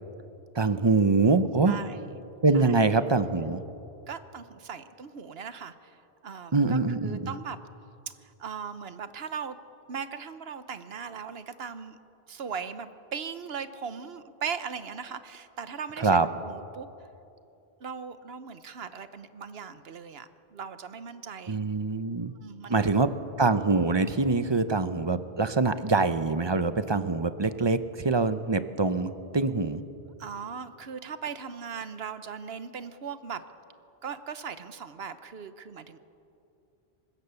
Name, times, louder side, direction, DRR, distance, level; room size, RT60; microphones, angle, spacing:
voice 1, 0.5-1.8 2.4-3.6 6.5-7.3 16.0-16.3 21.5-22.3 22.7-23.1 23.4-29.8, right 3 dB, 30° right, 11 dB, 0.8 m, -24 dB
voice 2, 1.7-2.1 2.5-2.7 4.1-7.6 8.2-9.6 9.9-12.0 12.3-16.9 17.8-21.6 22.3-22.9 30.2-33.4 34.0-36.0, right 6 dB, 75° right, 12 dB, 1.2 m, -39 dB
24.5 x 20.5 x 7.0 m, 2.8 s
omnidirectional pair, 1.0 m